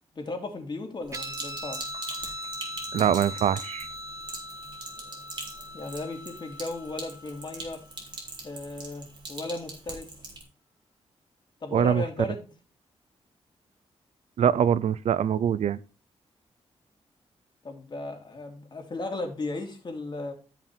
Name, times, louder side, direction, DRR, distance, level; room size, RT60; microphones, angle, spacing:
voice 1, 0.1-1.8 5.7-7.8 8.4-10.1 11.6-12.5 17.6-20.3, left 2 dB, 40° left, 2.9 m, -35 dB
Guitar, 1.1-8.0, equal, 25° right, 0.6 m, -40 dB
Sink (filling or washing), 1.1-10.4, right 2 dB, 40° right, 3.7 m, -42 dB
voice 2, 2.9-3.9 11.7-12.0 14.4-15.8, right 8 dB, 80° right, 0.5 m, -23 dB
12.5 x 5.9 x 4.4 m
cardioid pair, 100°, 11 cm